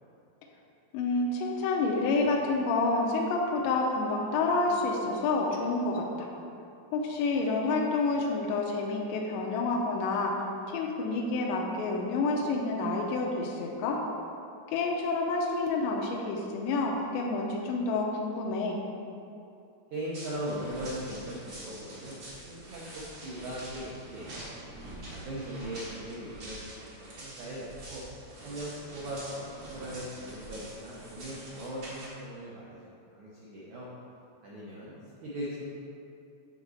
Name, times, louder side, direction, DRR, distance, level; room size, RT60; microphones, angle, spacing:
voice 1, 0.9-6.3 6.9-10.3 10.7-14.0 14.7-18.8, left 3 dB, 80° left, -1 dB, 2.9 m, -29 dB
voice 2, 19.9-22.2 22.5-24.5 25.1-28.0 28.4-33.9 34.4-34.9 35.2-35.7, right 1 dB, 85° right, -7 dB, 1.7 m, -39 dB
sound 1, 20.1-32.1, right 1 dB, 65° right, 1.1 m, -45 dB
8.8 x 4.1 x 6.4 m, 2.7 s
omnidirectional pair, 5.0 m